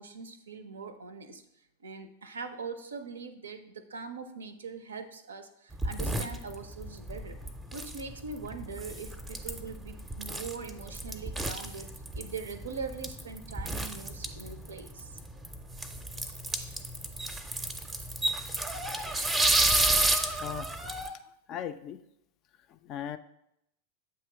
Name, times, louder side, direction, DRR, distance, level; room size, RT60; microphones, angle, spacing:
voice 1, 0.0-1.4 1.8-7.4 7.7-11.9 12.1-15.2, right 5 dB, 70° right, 10 dB, 0.5 m, -42 dB
sound 1, 5.7-21.1, right 2 dB, 10° right, 0.5 m, -32 dB
voice 2, 20.1-21.2 21.5-22.0 22.7-23.2, left 10 dB, 35° left, 11 dB, 0.3 m, -40 dB
7.8 x 3.0 x 4.7 m, 0.79 s
figure-of-eight pair, 90°, 0 cm